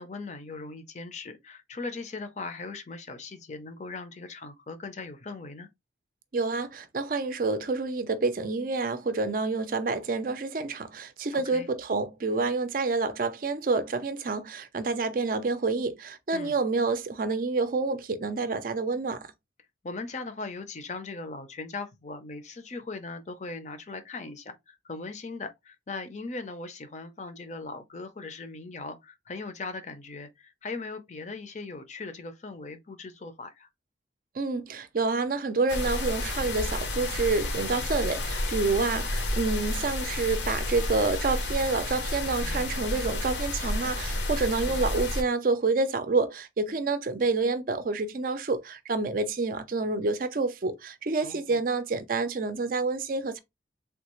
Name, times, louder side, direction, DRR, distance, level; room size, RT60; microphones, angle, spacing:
voice 1, 0.0-5.7 11.3-11.7 16.3-16.6 19.8-33.7 42.4-42.6 44.6-44.8 51.2-51.6, left 3 dB, 40° left, 0.5 m, -39 dB
voice 2, 6.3-19.3 34.3-53.4, right 3 dB, 50° right, 0.4 m, -28 dB
sound 1, 35.7-45.2, left 2 dB, 75° left, 0.8 m, -31 dB
3.4 x 2.4 x 3.0 m
head